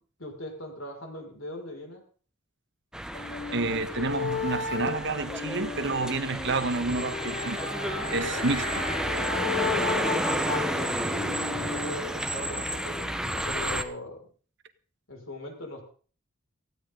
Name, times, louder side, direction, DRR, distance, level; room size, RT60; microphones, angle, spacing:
voice 1, 0.2-2.1 8.2-8.4 9.7-10.0 10.7-14.3 15.1-15.8, left 1 dB, 85° left, 5.9 m, -40 dB
sound 1, 2.9-13.8, right 1 dB, 5° right, 1.2 m, -31 dB
sound 2, 3.1-11.9, left 5 dB, 35° left, 3.4 m, -34 dB
voice 2, 3.5-7.6 8.1-8.7, right 3 dB, 60° right, 1.4 m, -29 dB
19.0 x 15.5 x 4.0 m
head